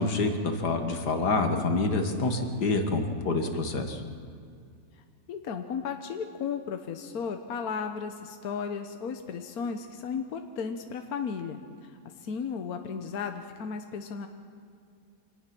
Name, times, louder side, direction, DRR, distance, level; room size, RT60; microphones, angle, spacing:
voice 1, 0.0-4.0, left 3 dB, 85° left, 5 dB, 2.2 m, -27 dB
voice 2, 5.3-14.3, left 6 dB, 70° left, 6 dB, 1.4 m, -35 dB
25.5 x 19.0 x 6.1 m, 2.3 s
omnidirectional pair, 1.7 m